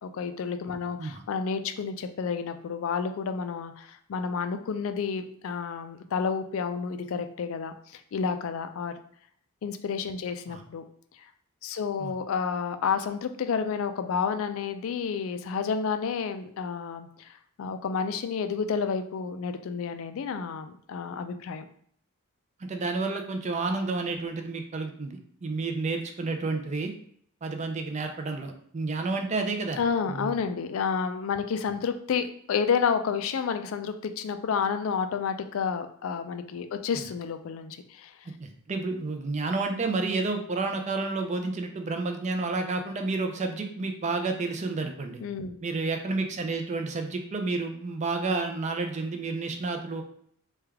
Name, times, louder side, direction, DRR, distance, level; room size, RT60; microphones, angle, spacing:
voice 1, 0.0-8.9 9.6-10.8 11.6-21.6 29.8-38.1 45.2-45.6, left 6 dB, 65° left, 9 dB, 0.3 m, -30 dB
voice 2, 22.6-26.9 27.4-29.8 30.1-30.3 38.4-45.2 45.6-50.0, right 3 dB, 30° right, 4 dB, 0.4 m, -30 dB
3.3 x 2.3 x 3.4 m, 0.63 s
head